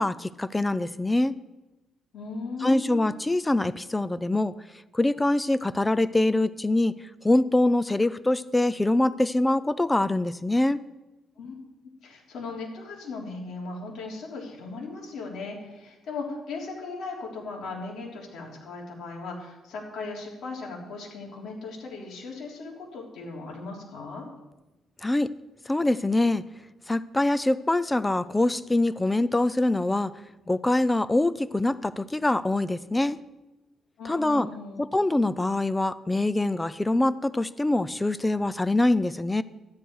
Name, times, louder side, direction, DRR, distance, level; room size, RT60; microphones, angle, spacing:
voice 1, 0.0-1.3 2.6-4.5 4.9-7.0 7.2-10.8 25.0-25.3 25.7-26.4 26.9-30.1 30.5-33.2 34.1-34.5 34.8-39.4, left 2 dB, 15° left, 17 dB, 0.5 m, -24 dB
voice 2, 2.1-3.1 11.4-11.5 12.0-24.3 34.0-34.8, left 3 dB, 70° left, -2 dB, 3.5 m, -37 dB
13.0 x 10.0 x 4.8 m, 1.1 s
cardioid pair, 90°, 0 cm